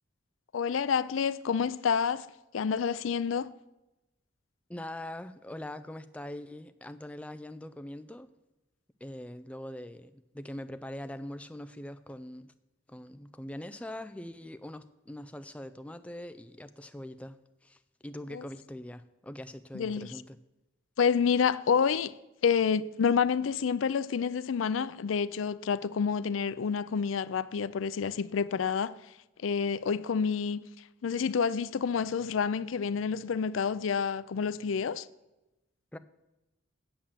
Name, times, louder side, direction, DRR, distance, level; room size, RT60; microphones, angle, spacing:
voice 1, 0.5-2.3 2.5-3.5 18.3-18.4 19.7-20.1 21.0-22.1 22.4-28.9 29.4-30.7 31.0-35.1, left 6 dB, 85° left, 0.4 m, -28 dB
voice 2, 4.7-8.3 9.0-12.5 12.9-20.4 35.9-36.0, left 1 dB, 5° left, 0.4 m, -42 dB
8.7 x 7.3 x 7.2 m
head